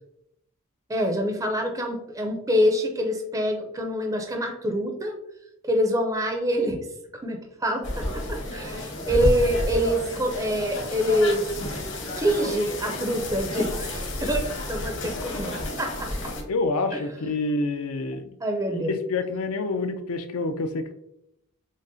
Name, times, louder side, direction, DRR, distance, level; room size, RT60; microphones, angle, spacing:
voice 1, 0.9-5.2 5.6-6.9 7.2-11.5 12.2-16.3 18.4-19.0, equal, 15° right, 3 dB, 0.4 m, -26 dB
sound 1, 7.8-16.4, left 1 dB, 60° left, 1.1 m, -31 dB
voice 2, 16.5-18.4 18.7-20.9, left 3 dB, 80° left, 8 dB, 0.5 m, -27 dB
6.2 x 2.1 x 2.6 m, 0.78 s
head